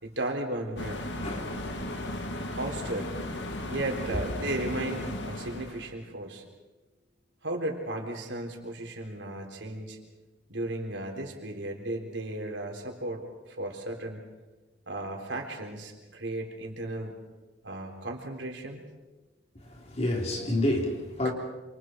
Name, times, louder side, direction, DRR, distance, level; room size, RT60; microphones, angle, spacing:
voice 1, 0.0-1.2 2.6-3.1 3.7-6.4 7.4-10.0 10.5-14.3 14.9-17.2 17.6-18.8 21.2-21.3, right 1 dB, 75° right, 2 dB, 3.9 m, -35 dB
sound 1, 0.8-5.9, left 1 dB, 70° left, 2.2 m, -35 dB
voice 2, 1.2-1.5 19.6-21.3, left 1 dB, 35° left, 0 dB, 4.1 m, -29 dB
27.5 x 27.5 x 4.7 m, 1.2 s
head